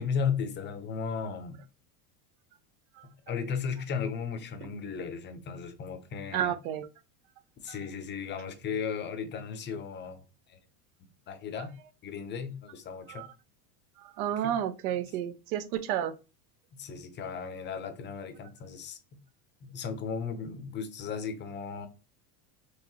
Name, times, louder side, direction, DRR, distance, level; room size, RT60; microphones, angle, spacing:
voice 1, 0.0-1.6 3.3-6.5 7.6-10.2 10.5-10.6 11.3-11.7 12.0-13.3 14.4-14.5 16.7-19.0 19.6-21.9, left 6 dB, 25° left, 0.7 m, -35 dB
voice 2, 6.3-6.9 13.1-13.3 14.0-16.1, right 10 dB, 70° right, 0.7 m, -31 dB
4.8 x 3.0 x 2.9 m
supercardioid pair, 130°, 45 cm